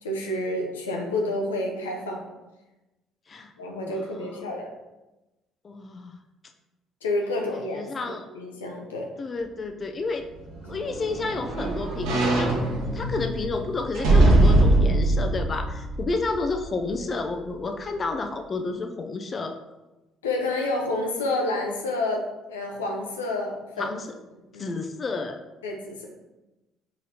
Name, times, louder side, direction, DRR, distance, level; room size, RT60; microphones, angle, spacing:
voice 1, 0.0-2.3 3.6-4.7 7.0-9.1 20.2-23.9 24.5-24.7 25.6-26.1, left 2 dB, 90° left, 1 dB, 0.6 m, -29 dB
voice 2, 5.6-6.2 7.6-8.3 9.2-10.3 10.7-12.5 12.9-19.6 23.8-24.1 24.6-25.4, left 3 dB, 40° left, 5 dB, 0.5 m, -30 dB
sound 1, 10.3-16.7 17.1-17.2, right 2 dB, 70° right, 1.0 m, -22 dB
4.8 x 3.8 x 2.8 m, 1.0 s
hypercardioid pair, 55°, 0 cm